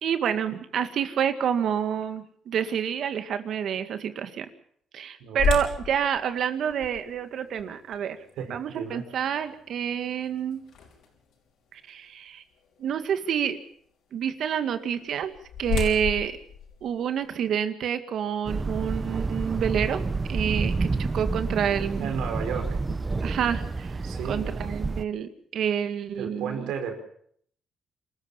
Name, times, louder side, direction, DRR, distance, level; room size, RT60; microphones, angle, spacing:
voice 1, 0.0-4.5 4.9-8.2 8.5-10.6 11.7-12.4 12.8-13.6 14.1-15.3 15.6-16.4 16.8-20.0 20.3-22.1 23.2-26.7, right 8 dB, 65° right, 10 dB, 2.0 m, -28 dB
voice 2, 5.2-5.5 8.4-9.0 22.0-22.8 24.0-24.5 26.2-27.0, right 7 dB, 85° right, 5 dB, 4.8 m, -33 dB
sound 1, 5.4-11.3 11.9-12.0 12.6-12.8 14.9-17.5, left 7 dB, 80° left, 5.8 m, -33 dB
sound 2, 18.5-25.0, right 3 dB, 25° right, 1.0 m, -29 dB
26.5 x 14.0 x 7.4 m, 0.64 s
cardioid pair, 95°, 0 cm